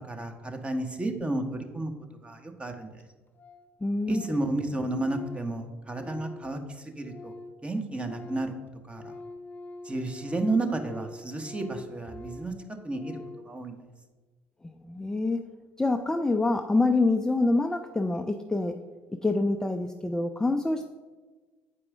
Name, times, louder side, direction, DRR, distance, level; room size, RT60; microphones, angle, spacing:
voice 1, 0.1-1.9 2.2-2.9 4.1-6.6 7.0-7.3 7.6-8.5 8.9-9.1 9.8-12.5 12.8-13.2 13.5-13.7, right 2 dB, 20° right, 5 dB, 1.0 m, -31 dB
Organ, 2.4-2.5 2.7-2.8 3.0-3.1 3.3-3.7 4.0-7.6 7.9-13.5, left 2 dB, 30° left, 0.8 m, -45 dB
voice 2, 3.8-4.2 14.6-15.4 15.8-18.8 19.2-20.9, left 2 dB, 10° left, 6 dB, 0.4 m, -26 dB
8.3 x 4.7 x 3.6 m, 1.3 s
hypercardioid pair, 60°, 6 cm